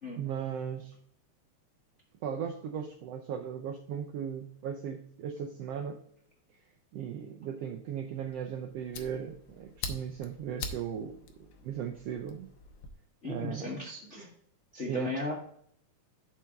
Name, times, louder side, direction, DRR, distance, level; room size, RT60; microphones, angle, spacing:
voice 1, 0.2-1.0 2.2-6.0 6.9-12.5 13.2-13.8 14.9-15.1, right 8 dB, 80° right, 5 dB, 1.4 m, -37 dB
Fire, 8.3-12.9, left 4 dB, 80° left, 1.0 m, -44 dB
voice 2, 13.2-14.3 14.7-15.3, left 2 dB, 40° left, -2 dB, 1.0 m, -36 dB
7.4 x 4.6 x 7.0 m, 0.65 s
omnidirectional pair, 3.5 m